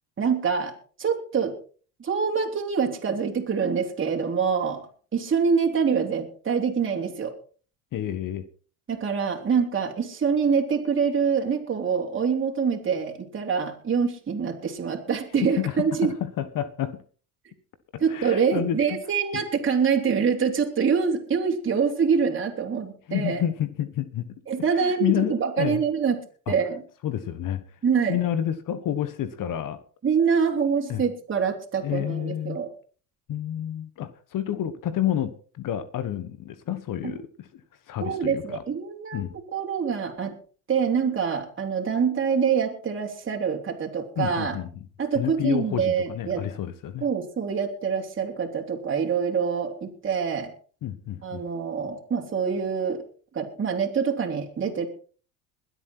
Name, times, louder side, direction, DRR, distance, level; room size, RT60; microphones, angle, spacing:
voice 1, 0.2-0.7 1.0-1.5 2.0-4.8 5.1-7.3 8.9-16.1 18.0-23.4 24.5-26.2 26.5-26.8 27.8-28.2 30.0-32.7 37.0-37.1 38.0-39.2 39.5-40.4 40.7-44.6 45.0-46.4 47.0-50.5 51.2-53.0 53.3-54.9, right 6 dB, 30° right, 1 dB, 3.4 m, -25 dB
voice 2, 7.9-8.4 15.4-17.0 17.9-19.0 19.3-19.4 23.1-24.3 24.8-25.8 26.5-26.6 27.0-27.6 28.1-29.8 30.9-31.0 31.8-32.6 33.3-37.5 37.9-38.6 39.1-39.3 44.2-44.7 45.1-47.0 50.8-51.4, left 11 dB, 50° left, 12 dB, 1.5 m, -29 dB
22.5 x 8.1 x 4.6 m, 0.41 s
supercardioid pair, 90°, 42 cm